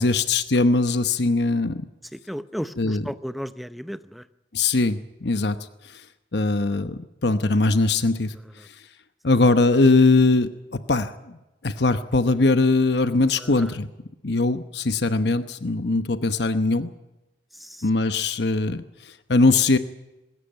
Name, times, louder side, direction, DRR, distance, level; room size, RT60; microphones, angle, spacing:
voice 1, 0.0-1.9 2.8-3.0 4.5-5.6 5.8-6.0 6.3-8.4 9.2-11.4 11.6-13.9 14.2-16.9 17.8-19.8, left 3 dB, 65° left, 11 dB, 1.0 m, -21 dB
voice 2, 2.1-4.2 13.4-13.7 17.5-17.9, equal, ahead, 13 dB, 0.7 m, -34 dB
20.5 x 17.0 x 9.1 m, 1.0 s
head